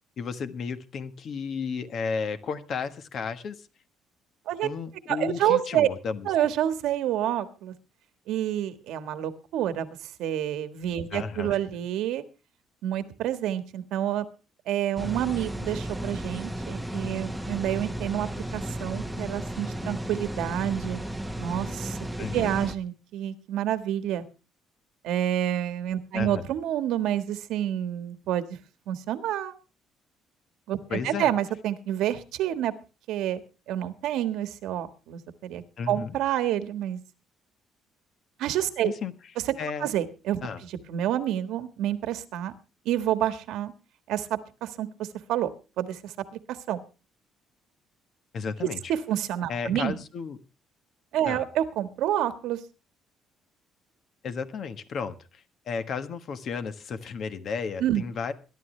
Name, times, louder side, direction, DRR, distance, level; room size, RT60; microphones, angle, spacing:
voice 1, 0.2-3.6 4.6-6.3 11.1-11.6 22.2-22.6 26.1-26.4 30.9-31.3 35.8-36.1 38.8-39.1 39.6-39.9 40.4-40.6 48.3-48.8 49.5-50.4 51.2-51.5 54.2-58.3, left 5 dB, 45° left, 11 dB, 1.3 m, -33 dB
voice 2, 5.1-5.9 6.2-7.7 8.3-9.9 10.2-12.2 12.8-14.2 14.7-21.0 21.4-24.2 25.0-28.4 28.9-29.5 30.7-32.7 33.1-33.4 33.7-37.0 38.4-38.9 39.8-42.5 42.8-43.7 44.1-45.5 45.8-46.1 46.7-46.8 48.9-50.0 51.1-52.6 57.8-58.0, right 11 dB, 75° right, 10 dB, 1.5 m, -28 dB
sound 1, 15.0-22.8, right 1 dB, ahead, 1.0 m, -34 dB
22.0 x 11.5 x 3.3 m, 0.32 s
cardioid pair, 150°, 0 cm